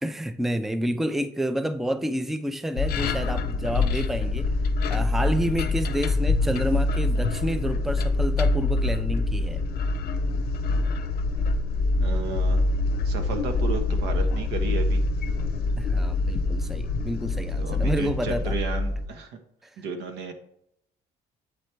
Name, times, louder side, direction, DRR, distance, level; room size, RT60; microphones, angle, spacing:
voice 1, 0.0-4.5 4.9-9.6 15.8-18.6 19.6-19.7, equal, ahead, 0.4 m, -29 dB
sound 1, 2.8-19.1, left 3 dB, 65° left, 0.6 m, -25 dB
voice 2, 12.0-12.6 13.0-15.0 17.5-19.4 19.8-20.3, right 5 dB, 85° right, 0.9 m, -33 dB
8.0 x 3.3 x 4.4 m
cardioid pair, 110°, 17 cm